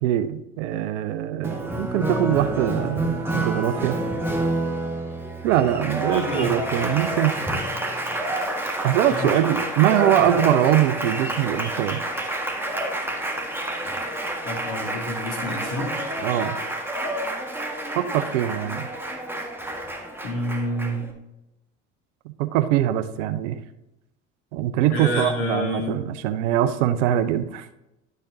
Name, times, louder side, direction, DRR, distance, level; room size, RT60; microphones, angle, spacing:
voice 1, 0.0-4.0 5.4-7.6 8.8-12.0 16.2-16.6 18.0-18.9 22.4-23.6 24.5-27.7, right 12 dB, 75° right, 12 dB, 0.7 m, -22 dB
Applause, 1.4-21.1, right 1 dB, 5° right, 1.6 m, -28 dB
voice 2, 6.1-6.6 9.1-9.4 14.4-15.9 20.2-21.1 24.9-26.0, left 1 dB, 75° left, -1 dB, 2.8 m, -28 dB
11.5 x 6.5 x 2.7 m, 0.91 s
hypercardioid pair, 65°, 37 cm